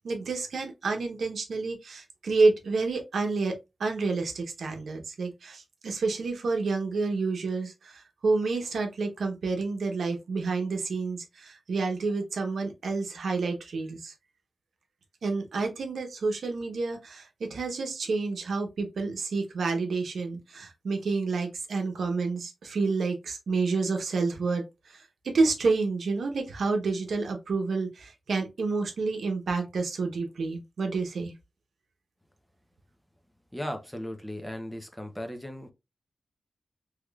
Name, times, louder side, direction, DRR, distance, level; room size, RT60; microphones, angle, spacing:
voice 1, 0.0-3.5 3.8-14.1 15.2-25.0 25.3-31.3, right 3 dB, 80° right, 0.9 m, -29 dB
voice 2, 33.5-35.7, equal, 5° left, 0.6 m, -37 dB
3.5 x 3.1 x 2.3 m
wide cardioid pair, 160°, 0 cm